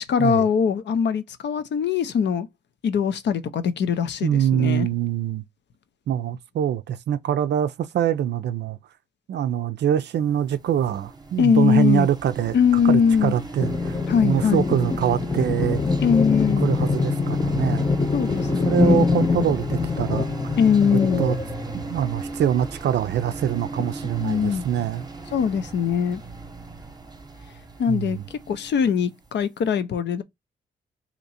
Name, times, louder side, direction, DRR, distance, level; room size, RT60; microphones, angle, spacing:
voice 1, 0.0-2.5 2.8-4.9 11.4-12.1 12.5-13.3 14.1-14.7 16.0-16.7 18.1-19.0 20.6-21.2 24.2-24.6 25.3-26.2 27.8-28.2 28.5-30.2, left 7 dB, 65° left, 0.6 m, -21 dB
voice 2, 4.2-5.4 6.1-8.8 9.3-12.6 12.8-15.8 16.6-17.9 18.5-20.3 20.8-21.4 21.7-25.1 27.9-28.2, right 10 dB, 65° right, 0.4 m, -24 dB
sound 1, 10.3-29.3, right 3 dB, 20° right, 0.8 m, -36 dB
sound 2, 13.6-22.3, left 4 dB, 20° left, 0.4 m, -24 dB
2.9 x 2.5 x 4.1 m
supercardioid pair, 50°, 19 cm